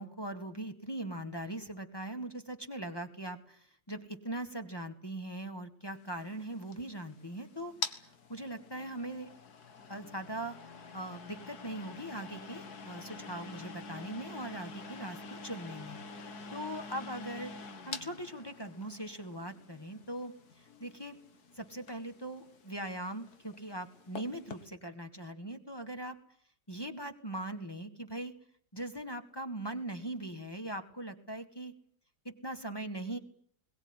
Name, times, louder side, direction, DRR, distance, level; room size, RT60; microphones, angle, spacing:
voice 1, 0.0-9.3 9.9-17.5 17.8-21.2 21.5-26.2 26.7-28.3 28.7-31.7 32.2-33.2, right 1 dB, 15° left, 4 dB, 1.6 m, -41 dB
sound 1, 6.0-24.7, left 4 dB, 55° left, 2.0 m, -47 dB
22.0 x 18.0 x 9.7 m, 0.63 s
omnidirectional pair, 2.0 m